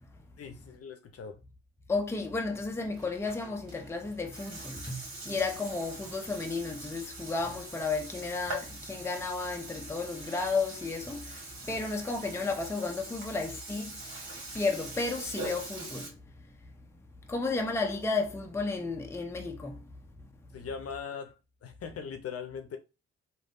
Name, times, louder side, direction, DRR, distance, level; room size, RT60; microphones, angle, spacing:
voice 1, 0.4-1.4 20.5-22.8, left 6 dB, 50° left, 0.7 m, -40 dB
voice 2, 1.9-5.0 5.3-11.2 11.7-13.9 14.5-16.1 17.3-19.8, left 3 dB, 10° left, 0.6 m, -32 dB
Burping eructation, 2.9-16.1, right 2 dB, 65° right, 1.7 m, -43 dB
3.3 x 2.5 x 2.6 m
supercardioid pair, 55°, 31 cm